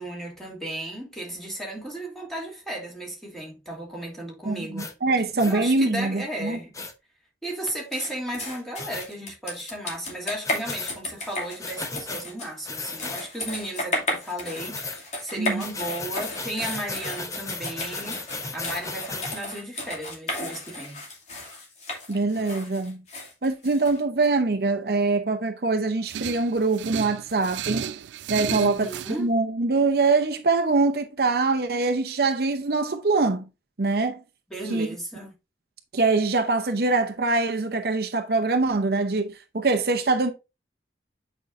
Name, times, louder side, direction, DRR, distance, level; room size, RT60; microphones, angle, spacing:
voice 1, 0.0-4.9 5.5-6.7 7.4-18.3 18.5-21.0 28.5-29.3 34.5-35.3, right 1 dB, ahead, 2.7 m, -35 dB
voice 2, 4.5-6.6 15.4-15.7 22.1-23.0 23.4-27.8 28.3-28.9 29.2-33.4 33.8-34.2 34.7-34.9 35.9-40.3, right 3 dB, 60° right, 0.7 m, -23 dB
sound 1, 4.8-4.9 5.4-5.6 6.7-6.9 8.8-9.1 10.4-10.9 11.6-12.2 12.6-13.2 14.6-15.0 15.6-19.4, left 3 dB, 20° left, 0.8 m, -35 dB
sound 2, 7.9-24.3, left 1 dB, 40° left, 2.5 m, -34 dB
sound 3, 26.1-29.2, right 9 dB, 90° right, 0.3 m, -33 dB
8.5 x 5.4 x 2.5 m
head